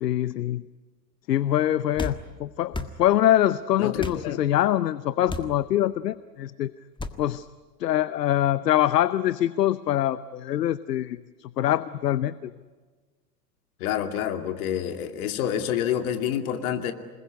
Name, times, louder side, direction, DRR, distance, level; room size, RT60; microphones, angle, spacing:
voice 1, 0.0-0.7 1.3-6.7 7.2-7.5 7.8-12.5, left 12 dB, 75° left, 17 dB, 0.8 m, -24 dB
sound 1, 2.0-2.2 2.7-2.9 4.0-4.2 5.3-5.5 7.0-7.2, left 2 dB, 10° left, 1.6 m, -32 dB
voice 2, 3.8-4.4 13.8-16.9, left 10 dB, 60° left, 6 dB, 2.6 m, -28 dB
27.5 x 20.5 x 9.5 m, 1.4 s
hypercardioid pair, 90°, 48 cm